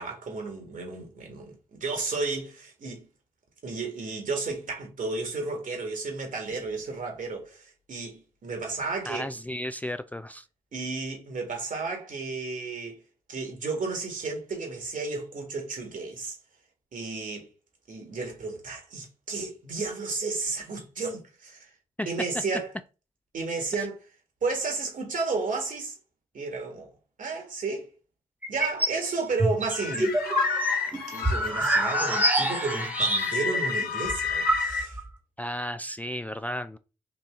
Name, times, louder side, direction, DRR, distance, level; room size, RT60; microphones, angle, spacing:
voice 1, 0.0-3.1 3.6-9.3 10.7-13.0 13.3-16.4 16.9-17.5 17.9-21.7 22.1-22.7 23.3-24.0 24.4-26.0 26.3-26.9 27.2-27.9 28.5-30.2 30.9-35.0, right 3 dB, 60° right, 1.8 m, -33 dB
voice 2, 9.1-10.4 22.0-22.1 35.4-36.8, equal, 10° left, 0.3 m, -33 dB
sound 1, 28.4-29.0 29.4-33.6 33.8-33.9 34.1-35.1, right 1 dB, 10° right, 1.3 m, -26 dB
sound 2, 29.7-34.8, left 5 dB, 85° left, 0.7 m, -30 dB
3.9 x 2.7 x 3.6 m
supercardioid pair, 45°, 15 cm